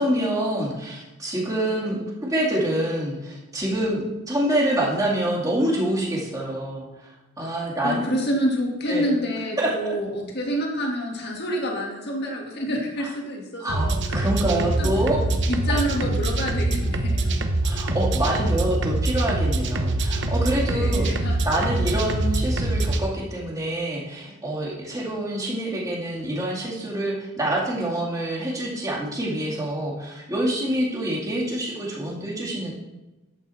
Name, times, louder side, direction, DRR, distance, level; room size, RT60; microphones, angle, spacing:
voice 1, 0.0-6.9 7.4-8.1 8.9-9.0 9.6-10.0 13.0-13.1 13.6-15.2 15.7-15.8 17.6-21.1 21.4-32.7, right 1 dB, 15° right, -4 dB, 2.4 m, -26 dB
voice 2, 7.8-13.9 14.5-14.9 15.2-17.3 20.7-21.4, equal, 50° left, -1 dB, 2.0 m, -28 dB
sound 1, 13.7-23.0, right 2 dB, 55° right, 1.0 m, -24 dB
11.0 x 8.1 x 4.3 m, 1.1 s
head